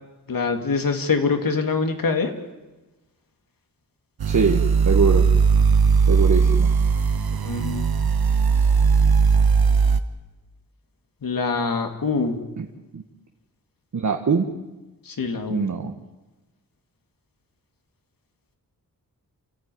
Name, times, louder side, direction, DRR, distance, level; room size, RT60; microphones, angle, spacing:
voice 1, 0.3-2.3 7.4-7.9 11.2-12.4 15.1-15.6, left 4 dB, 65° left, 6 dB, 2.7 m, -24 dB
voice 2, 4.2-5.3 6.1-6.7 12.6-12.7 12.9-13.0 13.9-14.5 15.5-15.9, right 5 dB, 50° right, 3 dB, 1.6 m, -23 dB
sound 1, 4.2-10.0, right 5 dB, 80° right, 1.3 m, -18 dB
28.5 x 15.0 x 9.4 m, 1.1 s
wide cardioid pair, 155°, 36 cm